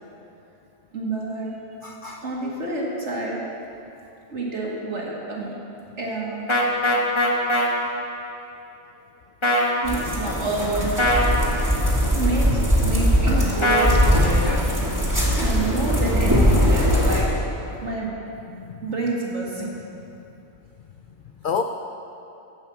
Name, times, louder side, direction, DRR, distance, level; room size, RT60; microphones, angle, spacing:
voice 1, 0.9-1.5 2.2-3.4 4.3-5.6 6.0-6.4 9.8-10.9 12.1-14.6 15.4-17.5 17.8-18.1 18.8-19.7, right 3 dB, 55° right, -3 dB, 2.3 m, -28 dB
voice 2, 1.8-2.2 14.5-14.6 18.5-18.8 21.4-21.6, left 6 dB, 65° left, 6 dB, 0.5 m, -29 dB
sound 1, 6.5-7.7 9.4-9.7 11.0-11.3 13.6-14.0, left 1 dB, 25° left, 1.2 m, -20 dB
sound 2, 9.8-17.2, equal, 15° right, 2.0 m, -20 dB
16.5 x 5.6 x 7.0 m, 2.8 s
omnidirectional pair, 1.4 m